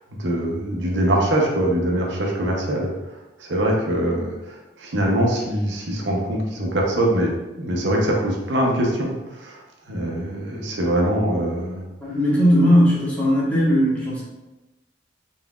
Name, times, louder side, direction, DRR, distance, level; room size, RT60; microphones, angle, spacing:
voice 1, 0.2-2.9 3.4-7.3 7.6-9.1 9.4-9.6 9.9-11.8, right 1 dB, 80° right, -1 dB, 0.7 m, -23 dB
voice 2, 12.0-14.2, equal, 10° left, -8 dB, 1.2 m, -18 dB
4.0 x 3.9 x 2.3 m, 1.0 s
head